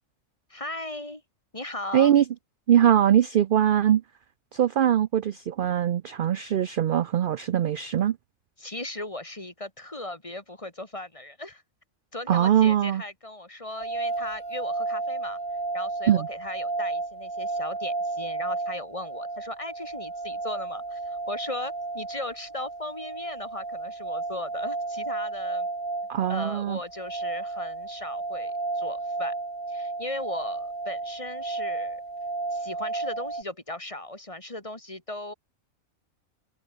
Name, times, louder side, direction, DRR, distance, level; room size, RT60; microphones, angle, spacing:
voice 1, 0.5-1.2 1.5-2.2 8.6-11.6 12.1-15.4 15.7-25.7 26.3-29.3 29.7-32.0 32.5-35.3, left 1 dB, 25° left, 2.7 m, -37 dB
voice 2, 1.9-2.2 2.7-4.0 4.5-8.2 12.3-13.0 16.1-16.3 26.1-26.8, right 10 dB, 60° right, 0.5 m, -22 dB
sound 1, 13.8-33.4, right 3 dB, 40° right, 2.7 m, -33 dB
omnidirectional pair, 1.4 m